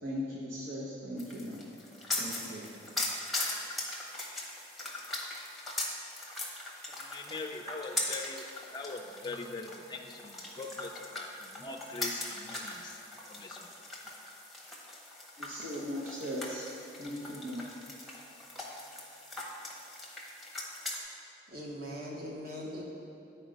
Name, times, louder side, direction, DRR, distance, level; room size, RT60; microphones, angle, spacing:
voice 1, 0.0-1.6 2.2-2.9 15.4-16.7 17.0-17.7, equal, 85° right, -5 dB, 0.9 m, -38 dB
sound 1, 1.2-21.0, left 2 dB, ahead, 0.8 m, -40 dB
voice 2, 7.0-8.5 8.7-13.0 13.3-13.7, left 3 dB, 25° left, 3 dB, 0.3 m, -42 dB
voice 3, 21.5-22.8, equal, 55° right, -3 dB, 1.0 m, -40 dB
8.8 x 4.4 x 5.1 m, 2.7 s
head